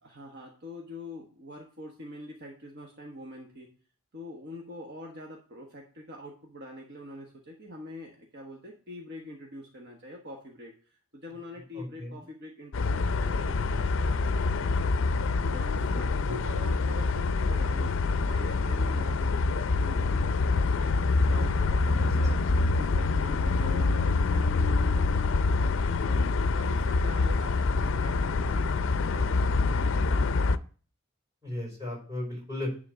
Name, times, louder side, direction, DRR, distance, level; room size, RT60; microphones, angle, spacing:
voice 1, 0.0-3.7 4.1-14.8 15.4-20.9 21.2-26.2 26.5-29.3 29.6-30.4, left 1 dB, 50° right, 0 dB, 1.1 m, -45 dB
voice 2, 11.7-12.2 16.3-16.6 21.9-22.1 31.4-32.7, left 1 dB, 15° right, -3 dB, 4.9 m, -36 dB
sound 1, 12.7-30.6, left 3 dB, 60° left, 0.4 m, -26 dB
10.5 x 3.7 x 6.3 m, 0.41 s
head